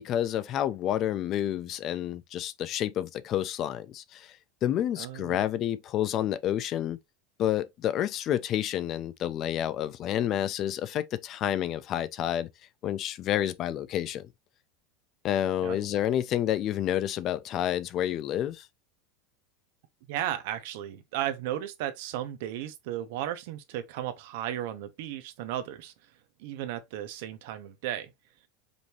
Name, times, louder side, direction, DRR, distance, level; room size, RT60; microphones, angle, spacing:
voice 1, 0.0-4.3 4.6-7.0 7.4-12.5 12.8-14.3 15.2-18.7, left 11 dB, 30° left, 0.4 m, -29 dB
voice 2, 5.0-5.4 15.6-15.8 20.1-25.9 26.4-28.1, right 12 dB, 65° right, 0.9 m, -35 dB
5.2 x 2.7 x 3.0 m
supercardioid pair, 165°, 0 cm